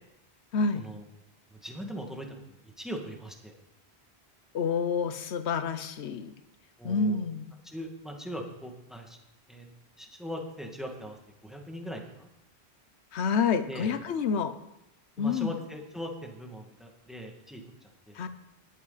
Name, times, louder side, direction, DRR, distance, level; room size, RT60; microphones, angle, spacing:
voice 1, 0.5-0.9 4.5-6.3 6.8-7.5 13.1-14.6 15.2-15.5 18.1-18.3, left 5 dB, 85° left, 11 dB, 1.0 m, -28 dB
voice 2, 1.5-3.6 6.8-7.2 7.6-9.2 9.5-9.7 10.0-12.3 13.7-13.9 15.2-17.6 18.1-18.2, equal, ahead, 1 dB, 1.9 m, -40 dB
20.0 x 7.5 x 4.0 m, 0.86 s
omnidirectional pair, 1.1 m